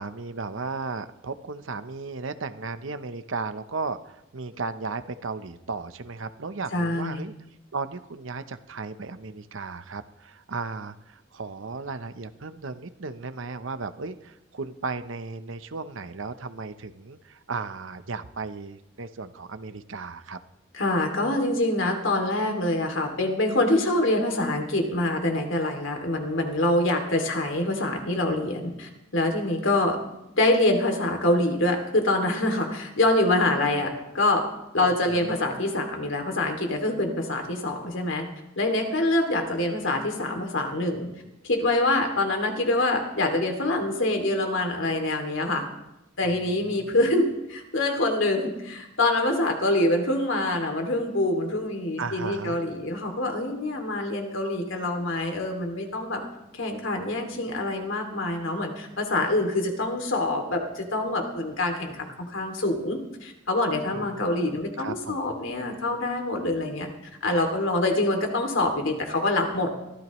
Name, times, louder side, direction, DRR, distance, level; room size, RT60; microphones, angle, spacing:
voice 1, 0.0-7.3 7.7-20.4 34.8-35.3 46.2-47.0 52.0-52.6 63.9-64.3 64.8-65.4, right 4 dB, 70° right, 11 dB, 0.8 m, -35 dB
voice 2, 6.7-7.2 20.7-30.0 30.4-34.4 34.7-38.2 38.6-41.1 41.4-45.6 46.2-56.2 56.5-66.9 67.2-69.7, left 2 dB, 70° left, 4 dB, 2.6 m, -25 dB
23.0 x 15.0 x 3.1 m, 0.92 s
head